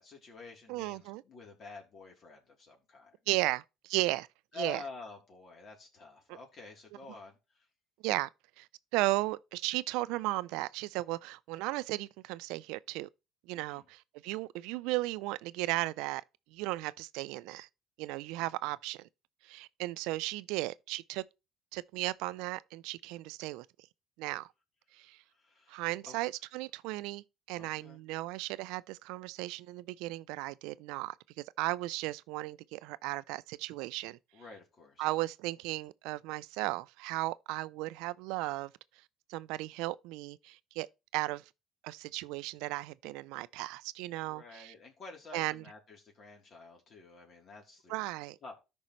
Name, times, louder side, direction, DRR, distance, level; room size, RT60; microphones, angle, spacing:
voice 1, 0.0-3.1 4.5-7.6 13.5-13.9 18.3-18.7 25.3-26.1 27.5-28.0 34.3-35.1 44.2-48.1 48.4-48.6, left 3 dB, 50° left, 3.3 m, -49 dB
voice 2, 0.7-1.2 3.3-4.3 4.6-4.8 6.3-6.4 8.0-8.3 8.6-13.1 13.5-16.2 16.5-17.7 18.0-19.1 19.4-21.2 21.7-23.7 24.2-24.5 24.9-25.2 25.7-31.2 31.6-34.2 35.0-38.7 39.3-40.9 41.1-41.4 41.8-44.7 45.3-45.6 47.9-48.4, right 19 dB, 80° right, 0.4 m, -35 dB
13.0 x 5.4 x 3.1 m
supercardioid pair, 80°, 0 cm